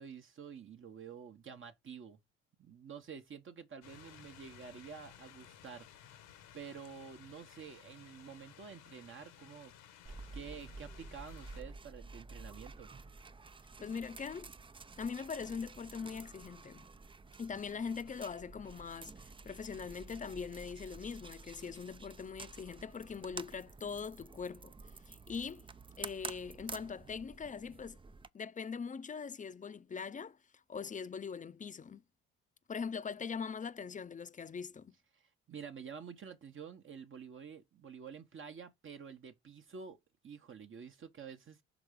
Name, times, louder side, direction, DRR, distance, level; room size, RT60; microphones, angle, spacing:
voice 1, 0.0-2.2 2.6-5.9 6.5-9.7 10.3-12.9 35.1-35.2 35.5-40.0 40.2-41.6, right 6 dB, 45° right, 1.0 m, -49 dB
sound 1, 3.8-11.6, left 10 dB, 85° left, 1.4 m, -57 dB
sound 2, 10.0-28.3, right 4 dB, 15° right, 0.4 m, -50 dB
voice 2, 13.8-14.5 15.0-16.9 17.4-24.7 25.1-25.6 26.0-28.0 28.3-30.4 30.7-32.0 32.7-34.9, left 6 dB, 25° left, 0.6 m, -42 dB
6.1 x 3.6 x 5.1 m
supercardioid pair, 75°, 30 cm